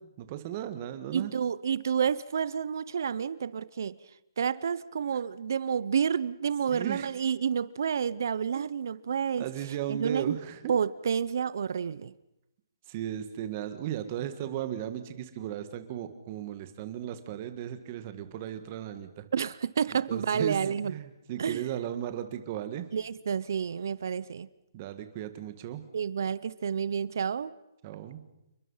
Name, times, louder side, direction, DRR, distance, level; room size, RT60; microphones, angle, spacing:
voice 1, 0.2-1.3 6.7-7.1 8.5-8.6 9.4-10.7 12.9-19.2 20.1-22.9 24.7-25.8 27.8-28.2, right 11 dB, 25° right, 1.8 m, -36 dB
voice 2, 1.1-4.0 4.4-9.5 9.9-10.4 10.7-12.1 19.3-21.0 21.4-21.7 22.9-24.5 25.9-27.5, right 7 dB, 55° right, 0.8 m, -29 dB
29.0 x 21.5 x 5.7 m
hypercardioid pair, 170°, 2 cm